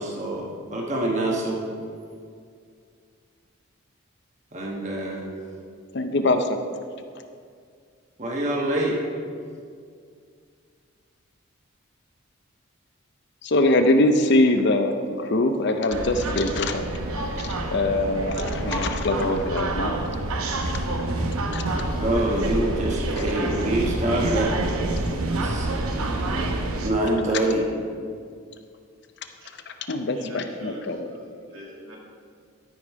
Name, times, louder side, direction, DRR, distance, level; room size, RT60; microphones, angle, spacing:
voice 1, 0.0-1.6 4.5-5.3 8.2-9.0 21.9-24.5 25.4-25.7 26.8-27.7, right 1 dB, 35° right, -1 dB, 1.2 m, -25 dB
voice 2, 5.9-6.6 13.4-16.8 17.7-20.0 21.5-21.6 29.7-31.1, left 2 dB, 50° left, 7 dB, 0.6 m, -23 dB
sound 1, 15.9-26.9, right 2 dB, 90° right, 0.9 m, -27 dB
voice 3, 30.1-32.0, left 1 dB, 75° right, -3 dB, 2.3 m, -42 dB
13.0 x 5.4 x 4.7 m, 2.2 s
head